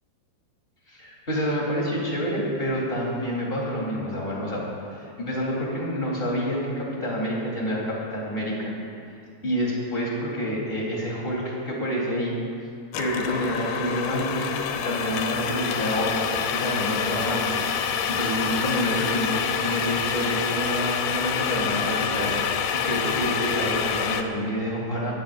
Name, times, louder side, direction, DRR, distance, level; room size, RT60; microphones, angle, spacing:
voice 1, 0.9-8.7 9.4-12.4 13.0-14.5 14.8-25.1, equal, 15° left, -5 dB, 3.8 m, -28 dB
sound 1, 12.9-24.2, left 7 dB, 75° left, 2.3 m, -27 dB
22.5 x 17.5 x 2.7 m, 2.4 s
omnidirectional pair, 4.9 m